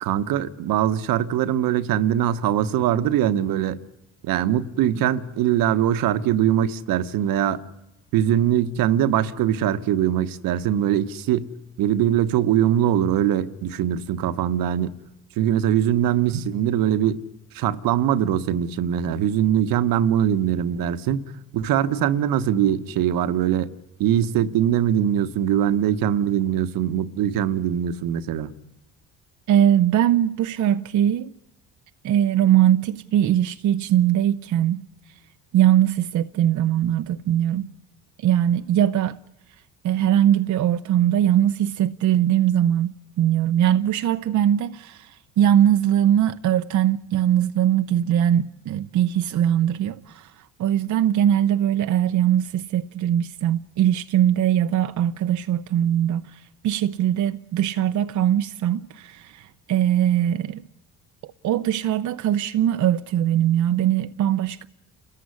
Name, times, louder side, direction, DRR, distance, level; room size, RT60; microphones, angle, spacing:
voice 1, 0.0-3.8 4.2-7.6 8.1-11.5 11.8-14.9 15.4-17.2 17.5-21.2 21.5-23.7 24.0-28.5, right 10 dB, 70° right, 1.3 m, -22 dB
voice 2, 29.5-31.3 32.0-34.9 35.5-37.7 38.2-39.2 39.8-60.6 61.4-64.7, right 11 dB, 55° right, 0.8 m, -21 dB
29.0 x 14.5 x 9.7 m
supercardioid pair, 80°, 35 cm